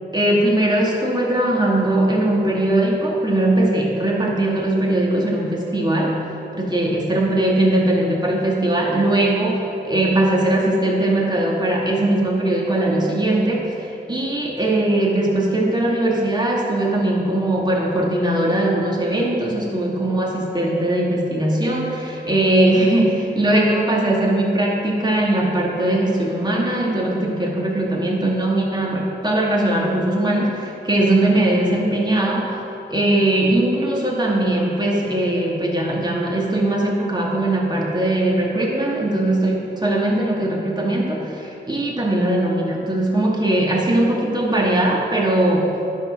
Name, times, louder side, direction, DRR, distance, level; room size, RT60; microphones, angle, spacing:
voice 1, 0.1-32.5 32.9-45.7, right 1 dB, 25° right, -3 dB, 2.1 m, -20 dB
10.5 x 6.2 x 6.0 m, 2.8 s
cardioid pair, 50°, 18 cm